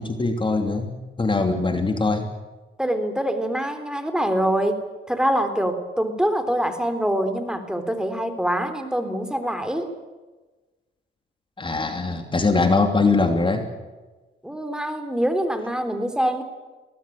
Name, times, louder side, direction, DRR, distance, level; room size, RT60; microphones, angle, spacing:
voice 1, 0.0-2.3 11.6-13.6, left 3 dB, 25° left, 6 dB, 2.8 m, -22 dB
voice 2, 2.8-9.9 14.4-16.4, equal, 5° right, 8 dB, 3.6 m, -24 dB
23.5 x 18.0 x 8.7 m, 1.2 s
cardioid pair, 90°, 20 cm